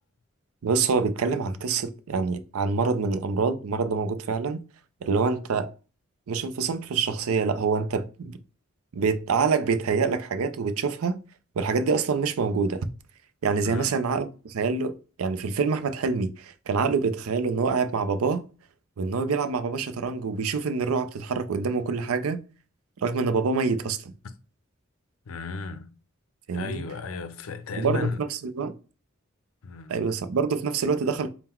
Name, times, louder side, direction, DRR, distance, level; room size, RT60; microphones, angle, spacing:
voice 1, 0.6-4.6 5.0-5.7 6.3-8.4 8.9-11.2 11.6-12.9 13.4-18.4 19.0-22.4 23.0-24.1 26.5-26.8 27.8-28.7 29.9-31.3, right 5 dB, 85° right, 0.5 m, -26 dB
voice 2, 25.3-25.9 26.5-28.2 29.6-29.9, left 4 dB, 75° left, 0.5 m, -33 dB
3.7 x 2.1 x 4.3 m
head